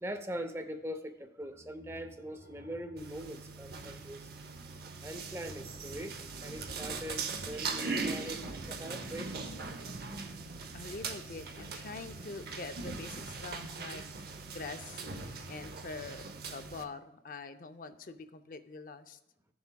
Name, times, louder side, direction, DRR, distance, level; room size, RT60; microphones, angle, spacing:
voice 1, 0.0-4.3 5.0-9.5, equal, 15° right, 0.6 m, -42 dB
sound 1, 1.4-4.6, left 1 dB, 75° left, 1.9 m, -58 dB
sound 2, 3.0-16.8, right 4 dB, 60° right, 0.7 m, -40 dB
sound 3, 7.6-13.1, right 1 dB, 35° right, 1.1 m, -56 dB
voice 2, 10.4-19.2, left 3 dB, 50° left, 0.5 m, -45 dB
16.0 x 7.0 x 2.3 m
head